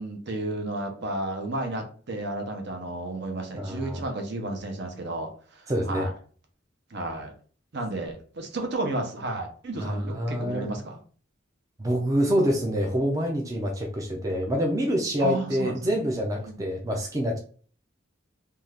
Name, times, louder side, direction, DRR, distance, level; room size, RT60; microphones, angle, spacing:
voice 1, 0.0-6.1 6.9-7.3 7.7-11.0 15.2-15.7 16.4-16.7, right 2 dB, 60° right, 4 dB, 0.7 m, -32 dB
voice 2, 3.5-4.0 5.7-6.1 9.8-10.7 11.8-17.4, equal, 15° right, 1 dB, 0.4 m, -26 dB
2.7 x 2.3 x 3.3 m, 0.43 s
head